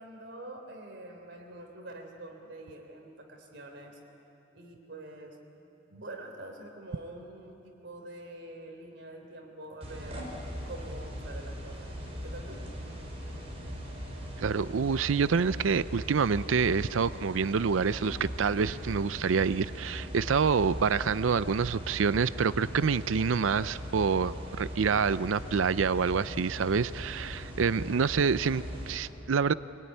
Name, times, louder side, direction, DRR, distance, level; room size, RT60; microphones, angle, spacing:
voice 1, 0.0-4.0 4.5-5.4 5.9-10.2 10.7-11.9 12.2-12.7, right 1 dB, 65° right, 2 dB, 3.7 m, -45 dB
sound 1, 9.8-28.9, equal, 30° right, 5.2 m, -40 dB
voice 2, 14.4-29.5, right 5 dB, 85° right, 16 dB, 0.5 m, -27 dB
26.0 x 18.0 x 9.8 m, 2.9 s
head